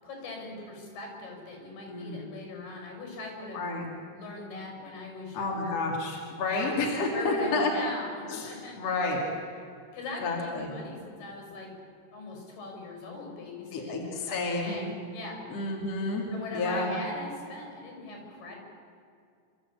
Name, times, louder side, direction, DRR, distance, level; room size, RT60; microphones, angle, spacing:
voice 1, 0.0-3.6 4.1-5.8 6.4-6.8 7.1-8.8 9.9-11.7 12.1-15.4 16.3-18.6, left 2 dB, 70° left, 1 dB, 7.8 m, -40 dB
voice 2, 1.9-2.3 3.5-3.9 5.3-7.7 8.3-8.5 8.8-9.2 10.2-10.7 13.7-14.7 15.5-16.9, left 3 dB, 45° left, -1 dB, 3.4 m, -30 dB
27.5 x 14.0 x 8.6 m, 2.4 s
omnidirectional pair, 4.7 m